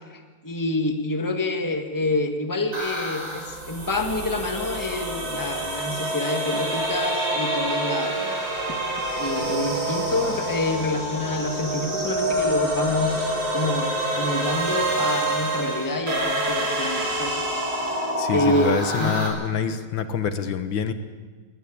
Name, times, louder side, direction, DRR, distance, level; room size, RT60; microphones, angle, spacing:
voice 1, 0.1-8.8 9.1-17.3 18.3-19.2, left 2 dB, 10° left, 5 dB, 1.6 m, -27 dB
sound 1, 2.7-19.3, right 1 dB, 85° right, 6.0 m, -27 dB
voice 2, 18.2-20.9, left 6 dB, 70° left, 10 dB, 1.9 m, -26 dB
20.0 x 19.0 x 8.6 m, 1.4 s
omnidirectional pair, 2.2 m